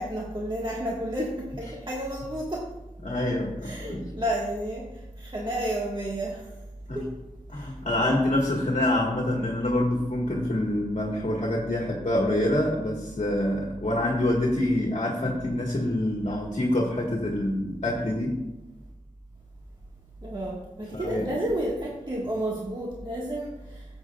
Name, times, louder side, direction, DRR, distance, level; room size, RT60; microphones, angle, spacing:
voice 1, 0.0-2.7 3.6-6.5 6.9-7.1 7.5-7.7 20.2-23.8, right 1 dB, 35° right, -4 dB, 1.6 m, -31 dB
voice 2, 3.0-4.0 6.9-7.0 7.5-18.4 20.9-21.3, left 1 dB, 55° left, -1 dB, 1.6 m, -26 dB
14.0 x 8.0 x 2.4 m, 0.98 s
wide cardioid pair, 50°, 14 cm